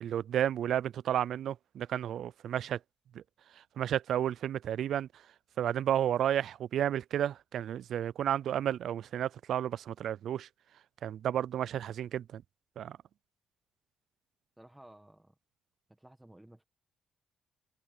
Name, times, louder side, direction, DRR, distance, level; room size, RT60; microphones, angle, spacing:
voice 1, 0.0-2.8 3.1-3.2 3.8-5.1 5.6-10.5 11.0-12.4 12.8-13.0, right 10 dB, 70° right, 0.3 m, -32 dB
voice 2, 14.6-15.3 15.9-16.6, right 1 dB, 10° right, 1.6 m, -55 dB
cardioid pair, 90°, 0 cm